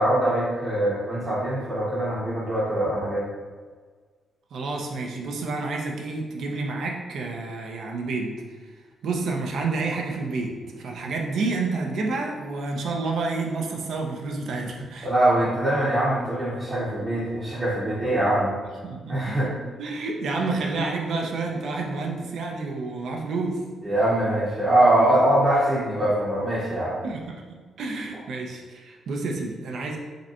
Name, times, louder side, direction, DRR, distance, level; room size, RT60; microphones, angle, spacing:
voice 1, 0.0-3.2 15.0-18.5 19.1-19.5 23.8-27.0, right 1 dB, 25° right, -9 dB, 0.8 m, -23 dB
voice 2, 4.5-8.4 9.0-15.1 18.8-19.4 19.8-23.6 27.0-27.4 27.8-30.0, right 3 dB, 65° right, 1 dB, 0.5 m, -29 dB
5.0 x 2.2 x 2.8 m, 1.5 s
cardioid pair, 140°, 0 cm